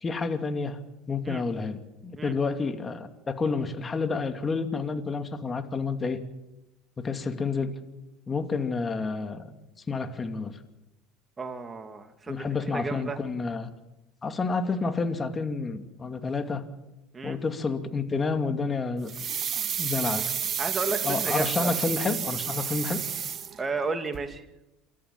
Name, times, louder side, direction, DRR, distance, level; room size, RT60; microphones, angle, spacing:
voice 1, 0.0-0.8 1.1-6.2 7.0-7.7 8.3-9.5 9.9-10.6 12.3-13.7 14.2-16.6 17.2-19.1 19.5-20.3 21.0-23.0, left 4 dB, 25° left, 7 dB, 2.5 m, -29 dB
voice 2, 11.4-13.2 17.1-17.4 20.6-21.7 23.6-24.4, right 4 dB, 25° right, 7 dB, 2.8 m, -33 dB
sound 1, 19.1-23.9 24.1-24.2, right 8 dB, 40° right, 2.1 m, -30 dB
28.5 x 14.0 x 7.4 m, 0.98 s
hypercardioid pair, 80°, 0 cm